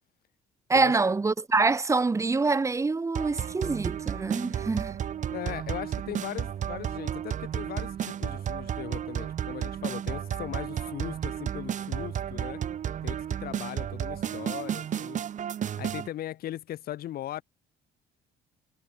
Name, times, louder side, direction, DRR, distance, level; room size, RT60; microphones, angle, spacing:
voice 1, 0.7-5.0, right 3 dB, 15° right, 0.9 m, -25 dB
sound 1, 3.1-16.1, right 9 dB, 45° right, 1.4 m, -33 dB
voice 2, 5.3-12.6 13.0-15.2 15.8-17.4, left 12 dB, 65° left, 2.1 m, -38 dB
cardioid pair, 110°, 17 cm